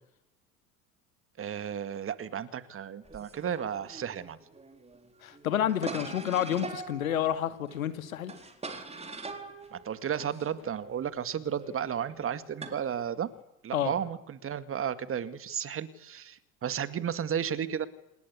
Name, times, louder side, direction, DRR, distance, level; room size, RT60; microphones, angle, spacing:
voice 1, 1.4-4.4 9.7-13.3 13.6-17.9, right 8 dB, 30° right, 13 dB, 2.1 m, -33 dB
sound 1, 3.0-13.4, right 3 dB, 15° right, 3.8 m, -44 dB
voice 2, 5.2-8.3 13.7-13.9, left 10 dB, 75° left, 12 dB, 2.1 m, -29 dB
27.0 x 21.5 x 8.6 m, 0.91 s
figure-of-eight pair, 70°, 41 cm